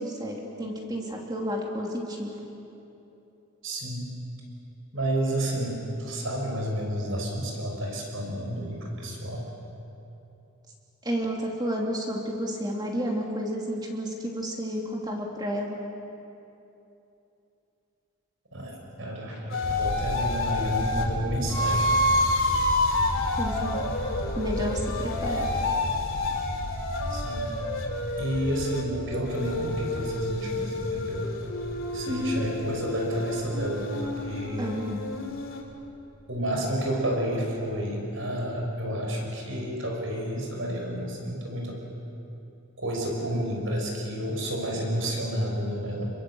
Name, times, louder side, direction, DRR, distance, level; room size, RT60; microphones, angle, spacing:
voice 1, 0.0-2.3 11.0-15.8 23.4-23.8 24.3-25.5 32.1-32.5 34.6-35.0, equal, 20° right, -1 dB, 2.8 m, -31 dB
voice 2, 3.6-4.1 4.9-9.4 18.5-21.8 27.1-27.6 28.2-31.3 31.9-34.8 36.3-41.8 42.8-46.1, right 1 dB, 60° right, 0 dB, 6.2 m, -30 dB
sound 1, 19.5-21.1 21.5-28.8 29.3-35.6, left 2 dB, 60° left, 3.3 m, -29 dB
sound 2, 19.6-35.6 35.9-36.0 36.3-36.4 36.6-36.9 37.1-37.4 37.8-37.9, equal, 85° left, 2.6 m, -36 dB
27.5 x 22.5 x 7.9 m, 2.9 s
head